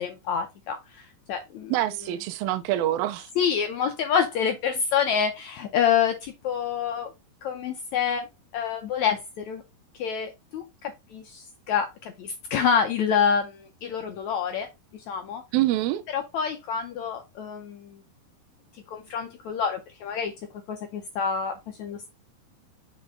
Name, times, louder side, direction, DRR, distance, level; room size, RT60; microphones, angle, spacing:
voice 1, 0.0-1.7 3.4-7.1 7.4-9.6 10.0-14.7 14.9-15.4 16.1-18.0 18.9-20.3 20.7-22.1, left 7 dB, 70° left, 1.8 m, -27 dB
voice 2, 1.7-3.3 15.5-16.0, right 14 dB, 85° right, 2.4 m, -25 dB
7.1 x 5.1 x 3.6 m
omnidirectional pair, 4.1 m